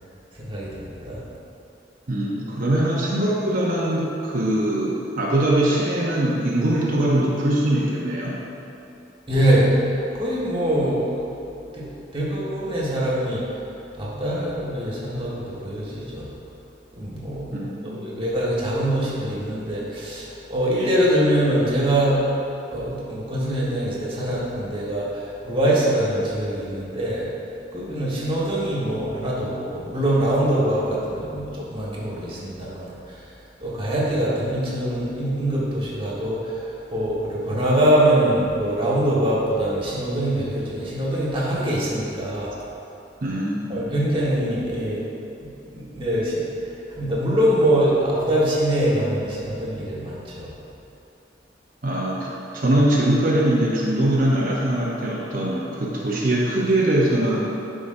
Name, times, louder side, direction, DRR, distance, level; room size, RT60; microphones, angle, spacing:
voice 1, 0.4-1.2 9.3-9.7 10.1-11.3 11.7-11.8 12.1-13.4 14.0-16.2 17.0-17.6 17.8-22.3 22.7-27.3 27.7-33.2 33.6-42.5 43.7-45.0 45.4-46.4 46.9-50.5, right 1 dB, 30° right, -6 dB, 1.5 m, -23 dB
voice 2, 2.1-8.4 17.5-18.2 43.2-43.9 51.8-57.4, right 1 dB, 50° right, -5 dB, 0.8 m, -22 dB
11.0 x 4.9 x 2.6 m, 2.8 s
head